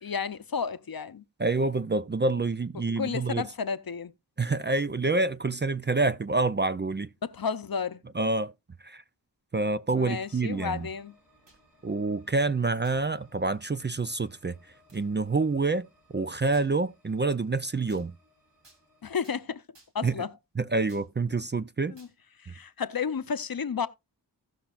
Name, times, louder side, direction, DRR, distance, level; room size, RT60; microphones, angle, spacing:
voice 1, 0.0-1.2 3.0-4.1 7.2-8.0 10.0-11.1 19.0-19.6 19.9-20.3 21.9-22.1 22.4-23.9, left 6 dB, 55° left, 0.8 m, -32 dB
voice 2, 1.4-3.4 4.4-7.1 8.2-8.5 8.8-9.0 9.5-10.9 11.8-14.6 14.9-15.9 16.1-18.1 20.0-20.1 20.6-22.0 22.5-22.6, right 3 dB, 25° right, 0.5 m, -27 dB
sound 1, 10.1-19.0, equal, 55° right, 6.4 m, -64 dB
sound 2, 11.2-11.7 12.8-13.1 13.7-13.8 14.9-15.1 16.5-16.7 17.9-18.1 18.6-18.8 19.2-19.4 19.7-20.1 20.9-21.1 22.0-22.1, right 2 dB, 85° right, 2.7 m, -58 dB
17.0 x 5.8 x 2.5 m
cardioid pair, 45°, 42 cm